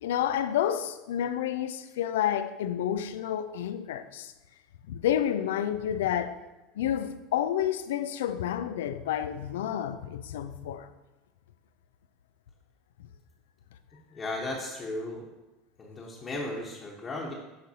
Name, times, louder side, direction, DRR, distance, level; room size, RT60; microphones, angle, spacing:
voice 1, 0.0-4.3 4.9-6.4 6.8-10.9, left 10 dB, 80° left, 0.4 m, -30 dB
voice 2, 14.1-15.3 15.8-17.3, left 2 dB, 30° left, 1.2 m, -35 dB
11.0 x 3.9 x 2.8 m
hypercardioid pair, 85°, 0 cm